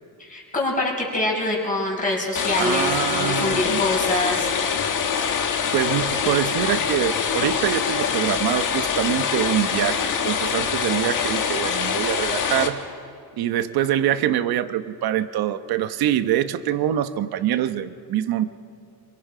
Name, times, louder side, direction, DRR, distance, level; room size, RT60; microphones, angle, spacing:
voice 1, 0.2-4.5, left 2 dB, 20° left, -2 dB, 5.2 m, -25 dB
sound 1, 2.3-12.7, left 7 dB, 55° left, 1.8 m, -24 dB
voice 2, 2.6-3.9 5.7-12.8 13.4-18.4, right 11 dB, 80° right, 11 dB, 1.1 m, -24 dB
27.0 x 23.5 x 5.1 m, 2.4 s
cardioid pair, 145°, 37 cm